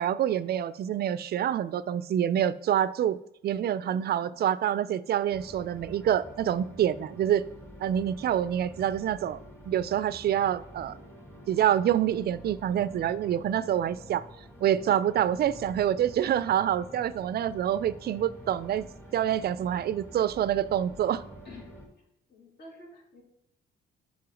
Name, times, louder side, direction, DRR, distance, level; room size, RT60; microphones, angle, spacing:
voice 1, 0.0-3.2 3.4-7.5 7.8-9.4 9.6-11.0 11.5-14.2 14.6-18.9 19.1-21.2, right 10 dB, 55° right, 17 dB, 0.4 m, -26 dB
voice 2, 3.8-4.4 14.8-15.0 21.4-21.7 22.3-23.2, left 2 dB, 55° left, -2 dB, 2.8 m, -50 dB
sound 1, 5.3-21.9, equal, 10° left, 2.7 m, -48 dB
5.5 x 4.7 x 6.2 m, 0.74 s
cardioid pair, 90°, 20 cm